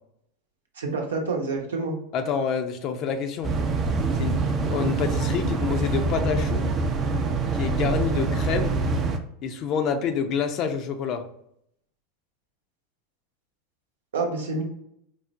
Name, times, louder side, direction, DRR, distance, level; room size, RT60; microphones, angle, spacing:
voice 1, 0.8-1.9 14.1-14.6, right 3 dB, 85° right, 1 dB, 0.7 m, -27 dB
voice 2, 2.1-3.5 4.1-6.7 7.5-8.8 9.4-11.2, left 6 dB, 45° left, 7 dB, 0.5 m, -27 dB
sound 1, 3.4-9.2, right 3 dB, 35° right, 0.4 m, -25 dB
4.5 x 2.0 x 2.5 m, 0.73 s
hypercardioid pair, 90°, 0 cm